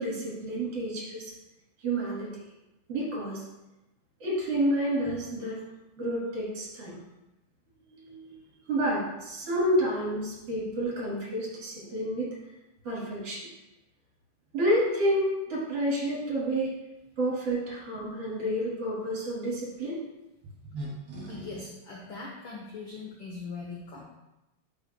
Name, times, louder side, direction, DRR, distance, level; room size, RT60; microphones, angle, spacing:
voice 1, 0.0-1.3 1.8-2.3 2.9-3.4 4.2-5.6 6.0-7.0 7.9-8.3 8.7-12.3 12.8-13.5 14.5-16.7 17.2-20.0 20.7-21.5, right 1 dB, 55° right, -5 dB, 3.4 m, -29 dB
voice 2, 21.3-24.0, left 4 dB, 70° left, -2 dB, 1.2 m, -41 dB
10.5 x 4.7 x 2.2 m, 0.96 s
omnidirectional pair, 3.3 m